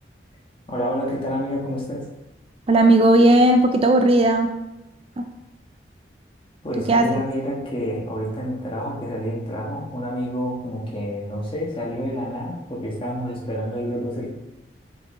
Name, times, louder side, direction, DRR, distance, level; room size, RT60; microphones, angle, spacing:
voice 1, 0.7-2.0 6.6-14.3, equal, 30° left, -4 dB, 1.4 m, -28 dB
voice 2, 2.7-4.5 5.2-5.3 6.9-7.1, right 1 dB, 30° right, 5 dB, 0.4 m, -16 dB
6.5 x 4.7 x 3.7 m, 0.96 s
head